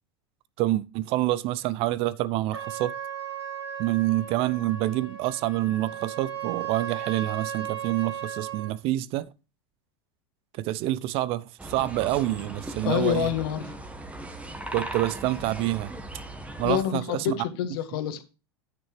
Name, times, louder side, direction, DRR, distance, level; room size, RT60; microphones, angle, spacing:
voice 1, 0.6-2.9 3.8-9.3 10.6-13.3 14.7-15.9 16.6-17.4, right 15 dB, 45° right, 0.6 m, -27 dB
Trumpet, 2.5-8.7, right 9 dB, 80° right, 4.1 m, -36 dB
sound 1, 11.6-16.8, right 1 dB, 10° right, 1.5 m, -38 dB
voice 2, 12.8-13.7 16.6-18.2, left 10 dB, 60° left, 1.7 m, -27 dB
9.9 x 9.0 x 3.3 m
figure-of-eight pair, 85°, 14 cm